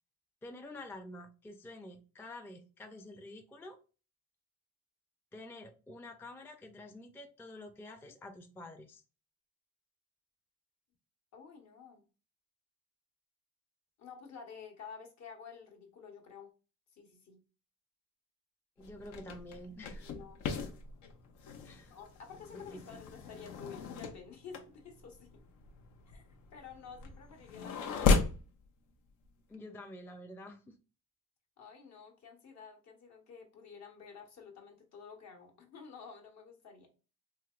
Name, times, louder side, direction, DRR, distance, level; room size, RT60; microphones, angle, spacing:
voice 1, 0.4-3.8 5.3-9.0 18.8-20.1 21.6-22.0 22.5-23.0 29.5-30.8, left 1 dB, 10° left, 0.3 m, -49 dB
voice 2, 11.3-12.0 14.0-16.5 16.9-17.4 20.0-20.4 21.9-25.3 26.1-26.2 26.5-28.3 31.6-36.9, left 6 dB, 65° left, 1.0 m, -51 dB
sound 1, 18.8-28.5, left 4 dB, 80° left, 0.6 m, -35 dB
3.2 x 2.8 x 2.3 m
cardioid pair, 90°, 30 cm